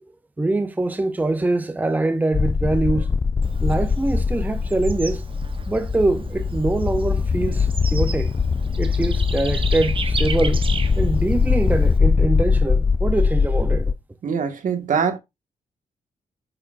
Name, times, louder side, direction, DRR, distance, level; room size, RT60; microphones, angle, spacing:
voice 1, 0.4-3.2 3.6-5.2 5.7-8.3 8.8-10.7 11.0-13.9, right 2 dB, 10° right, 0.7 m, -23 dB
sound 1, 2.3-13.9, left 5 dB, 25° left, 0.3 m, -21 dB
Bird / Insect, 3.4-12.0, right 5 dB, 40° right, 1.0 m, -35 dB
voice 2, 14.2-15.2, right 6 dB, 65° right, 1.8 m, -23 dB
8.6 x 6.4 x 2.6 m
cardioid pair, 105°, 14 cm